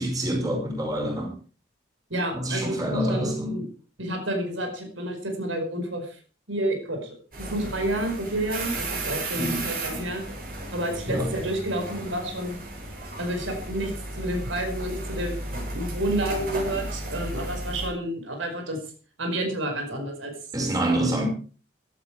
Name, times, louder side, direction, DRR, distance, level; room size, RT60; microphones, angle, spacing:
voice 1, 0.0-1.3 2.3-3.5 9.4-9.7 11.1-11.3 20.5-21.3, right 1 dB, 20° right, 1 dB, 5.7 m, -26 dB
voice 2, 2.1-2.8 3.1-3.7 4.0-6.2 6.5-10.4 10.7-12.6 13.2-18.8 19.2-20.3, right 1 dB, 90° right, 4 dB, 5.2 m, -30 dB
sound 1, 7.3-17.9, right 2 dB, 50° right, 7.2 m, -34 dB
16.5 x 12.0 x 4.8 m, 0.38 s
head